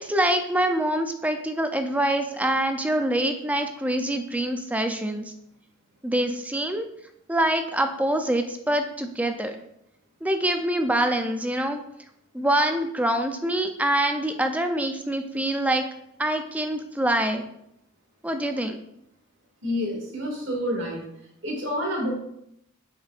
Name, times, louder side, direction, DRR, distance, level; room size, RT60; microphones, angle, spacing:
voice 1, 0.0-5.3 6.0-6.9 7.3-9.6 10.2-11.8 12.3-15.8 16.2-17.4 18.2-18.8, right 1 dB, 5° right, 5 dB, 0.5 m, -25 dB
voice 2, 19.6-21.0 21.4-22.1, equal, 60° right, -2 dB, 2.3 m, -28 dB
8.4 x 6.1 x 2.5 m, 0.75 s
head